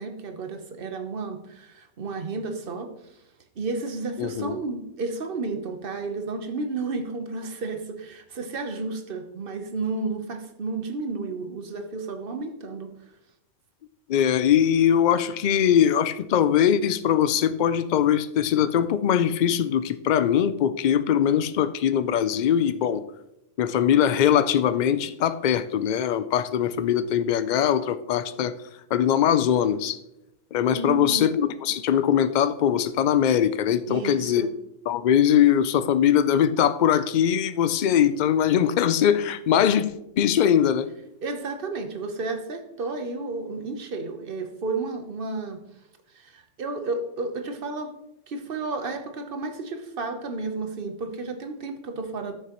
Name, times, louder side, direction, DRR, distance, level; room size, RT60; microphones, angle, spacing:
voice 1, 0.0-2.9 3.6-12.9 30.7-31.3 33.9-34.5 41.2-45.6 46.1-47.9 48.3-52.3, right 3 dB, 50° right, 7 dB, 1.0 m, -32 dB
voice 2, 4.2-4.6 14.1-23.0 23.6-28.6 28.9-30.0 30.5-34.5 34.9-40.9, left 9 dB, 60° left, 13 dB, 0.4 m, -21 dB
13.5 x 5.9 x 3.0 m, 0.86 s
omnidirectional pair, 1.3 m